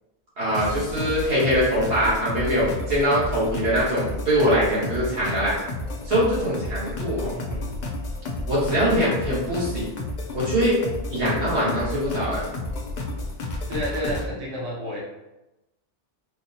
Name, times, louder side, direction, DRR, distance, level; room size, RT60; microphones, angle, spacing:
voice 1, 0.4-5.5 6.0-7.3 8.5-9.9 10.3-10.8 11.1-12.5, equal, 75° right, -8 dB, 1.6 m, -23 dB
sound 1, 0.5-14.3, left 2 dB, 55° left, 0.4 m, -31 dB
voice 2, 7.3-7.7 13.7-15.0, equal, 40° right, -4 dB, 0.7 m, -31 dB
4.3 x 2.0 x 2.7 m, 0.97 s
omnidirectional pair, 1.2 m